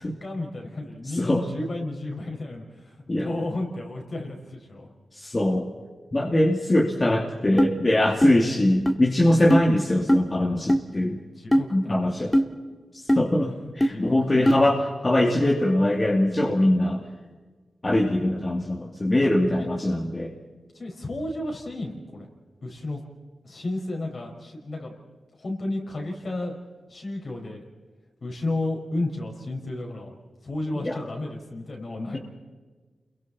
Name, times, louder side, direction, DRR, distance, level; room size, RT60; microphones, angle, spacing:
voice 1, 0.0-4.9 11.4-12.1 13.4-13.5 13.9-14.7 19.6-19.7 20.7-22.3 22.6-23.0 23.4-24.9 25.4-26.6 26.9-27.6 28.2-30.1 30.4-32.2, left 2 dB, 60° left, 1 dB, 5.7 m, -32 dB
voice 2, 1.0-1.5 3.1-3.3 5.1-5.7 6.1-11.2 11.7-12.3 12.9-17.0 17.8-20.3 30.7-31.1, left 1 dB, 35° left, 0 dB, 2.6 m, -22 dB
sound 1, 7.6-7.7 8.2-8.4 8.9-9.0 9.5-9.6 10.1-10.2 10.7-10.8 11.5-11.7 12.3-12.5 13.1-13.2 13.8-13.9 14.5-14.6, equal, 15° left, 2.1 m, -19 dB
29.0 x 23.0 x 4.3 m, 1.4 s
cardioid pair, 40°, 0 cm